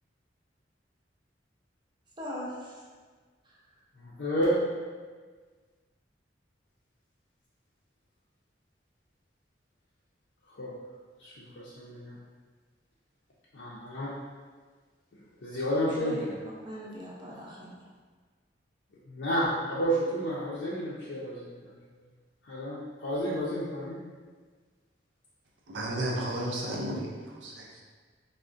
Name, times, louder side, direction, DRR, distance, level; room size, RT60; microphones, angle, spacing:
voice 1, 2.2-2.7 3.4-3.6 16.0-16.3 16.6-17.8, equal, 25° right, -5 dB, 0.5 m, -40 dB
voice 2, 4.0-4.6 10.5-10.7 11.2-12.2 13.5-14.1 15.4-16.3 19.1-21.7 22.4-24.0, equal, 70° left, -8 dB, 0.5 m, -31 dB
voice 3, 25.7-27.8, right 1 dB, 85° right, -2 dB, 0.5 m, -33 dB
3.5 x 2.0 x 2.5 m, 1.5 s
head